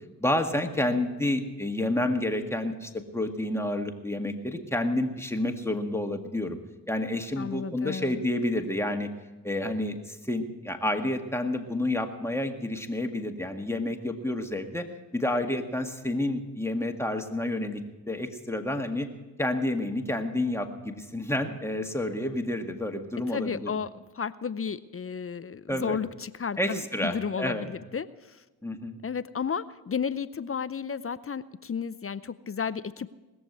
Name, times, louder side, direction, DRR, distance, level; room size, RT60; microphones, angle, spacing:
voice 1, 0.2-6.6 6.9-9.1 9.4-14.9 15.1-17.8 18.1-19.1 19.4-23.7 25.7-26.0 26.6-27.7 28.6-29.0, left 1 dB, 5° left, 5 dB, 1.9 m, -29 dB
voice 2, 7.4-8.2 23.3-28.4 29.0-33.1, left 6 dB, 30° left, 15 dB, 0.6 m, -33 dB
20.5 x 7.1 x 8.1 m, 1.1 s
hypercardioid pair, 45°, 45 cm